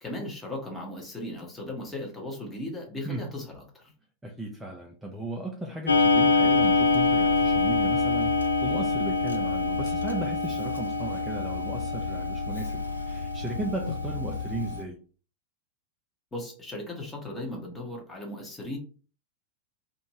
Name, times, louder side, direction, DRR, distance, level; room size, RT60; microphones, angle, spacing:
voice 1, 0.0-3.9 16.3-18.8, left 1 dB, 15° left, 0 dB, 1.0 m, -37 dB
voice 2, 4.2-15.0, right 2 dB, 10° right, -1 dB, 0.5 m, -36 dB
Clock, 5.9-14.8, left 3 dB, 75° left, 0.3 m, -25 dB
2.6 x 2.6 x 3.0 m, 0.39 s
figure-of-eight pair, 90°, 0 cm